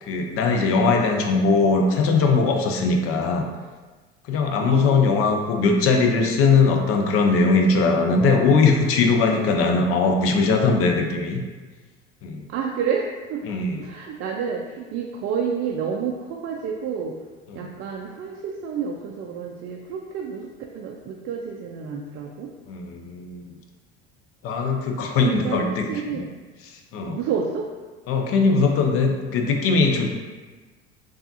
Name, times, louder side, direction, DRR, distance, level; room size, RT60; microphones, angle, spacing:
voice 1, 0.0-3.4 4.3-11.4 12.2-12.4 13.5-13.8 17.5-17.7 22.7-23.5 24.4-26.2 26.7-27.2 28.1-30.1, left 4 dB, 50° left, 2 dB, 0.6 m, -20 dB
voice 2, 4.6-5.1 12.5-17.1 17.5-22.5 25.2-26.3 27.0-27.7 28.4-29.2, right 6 dB, 45° right, 0 dB, 0.4 m, -30 dB
3.4 x 2.3 x 2.7 m, 1.3 s
hypercardioid pair, 75°, 30 cm